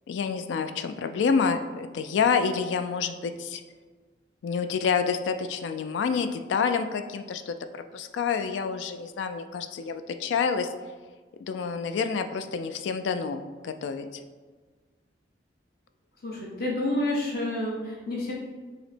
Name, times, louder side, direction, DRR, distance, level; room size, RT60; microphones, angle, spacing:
voice 1, 0.1-3.6 4.4-7.5 7.9-10.7 11.4-14.1, left 6 dB, 75° left, 9 dB, 0.3 m, -28 dB
voice 2, 16.2-18.3, left 1 dB, 55° left, -4 dB, 1.2 m, -29 dB
5.6 x 2.0 x 4.3 m, 1.4 s
head